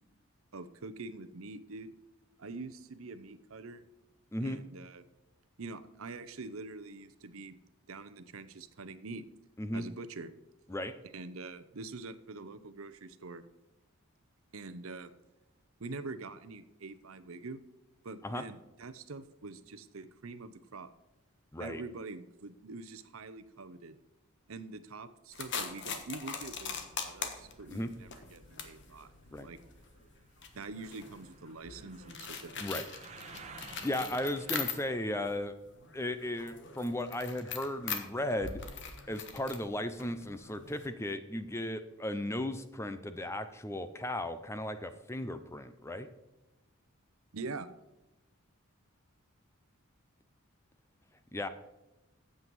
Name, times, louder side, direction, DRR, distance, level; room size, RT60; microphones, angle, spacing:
voice 1, 0.5-1.9 2.4-3.8 4.4-5.0 5.6-7.6 7.9-9.3 9.7-10.3 11.1-13.4 14.5-15.1 15.8-17.6 18.0-20.9 21.6-24.0 24.5-29.1 29.4-29.6 30.5-32.8 47.3-47.7, right 3 dB, 70° right, 12 dB, 0.7 m, -45 dB
sound 1, 25.3-35.1 35.5-40.9, left 6 dB, 55° left, 1.3 m, -42 dB
sound 2, 26.4-35.3, right 4 dB, 30° right, 1.0 m, -55 dB
voice 2, 33.8-35.5 35.9-38.6 39.1-46.1 51.3-51.5, left 1 dB, 10° left, 10 dB, 0.5 m, -36 dB
8.7 x 7.6 x 5.3 m, 0.99 s
head